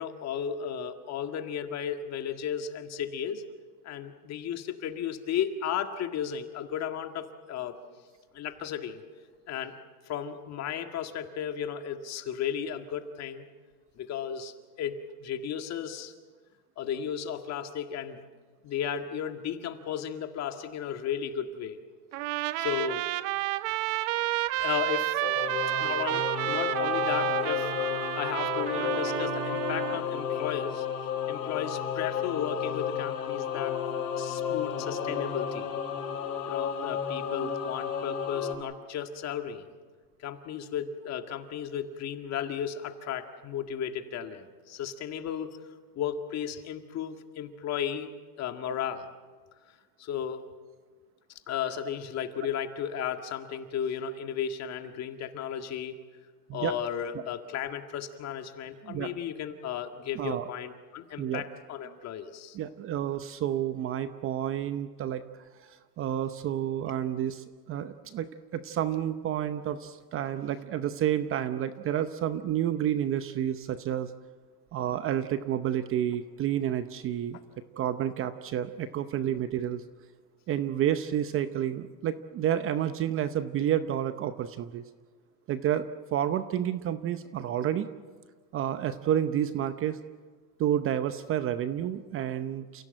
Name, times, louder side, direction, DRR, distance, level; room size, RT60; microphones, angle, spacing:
voice 1, 0.0-3.4 3.8-7.8 8.3-9.0 9.5-9.8 10.0-13.5 14.0-16.1 16.8-18.2 18.6-21.8 22.6-23.1 24.5-25.2 25.8-27.7 28.2-30.9 31.3-33.8 34.2-35.7 36.5-39.7 40.2-45.6 46.0-48.1 48.4-49.1 50.0-50.4 51.5-56.0 56.5-62.6, left 8 dB, 35° left, 6 dB, 1.9 m, -34 dB
Trumpet, 22.1-30.0, right 17 dB, 55° right, 0.9 m, -30 dB
Singing / Musical instrument, 25.2-38.5, left 8 dB, 85° left, 6.0 m, -32 dB
voice 2, 60.1-60.5 61.2-61.4 62.5-65.2 65.6-74.1 74.7-77.4 77.8-79.8 80.5-84.8 85.5-85.9 86.1-87.9 88.5-90.0 90.6-92.9, right 10 dB, 30° right, 11 dB, 0.8 m, -30 dB
29.5 x 16.5 x 7.8 m, 1.5 s
supercardioid pair, 130°, 46 cm